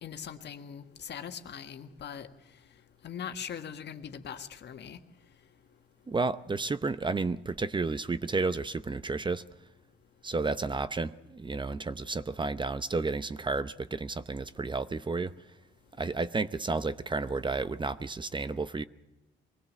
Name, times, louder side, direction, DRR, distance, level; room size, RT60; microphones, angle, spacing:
voice 1, 0.0-2.3 3.0-5.0, left 8 dB, 60° left, 7 dB, 1.6 m, -41 dB
voice 2, 6.1-9.4 10.2-15.3 16.0-18.8, right 3 dB, 25° right, 13 dB, 0.7 m, -31 dB
23.5 x 17.0 x 7.5 m, 0.98 s
cardioid pair, 90°, 20 cm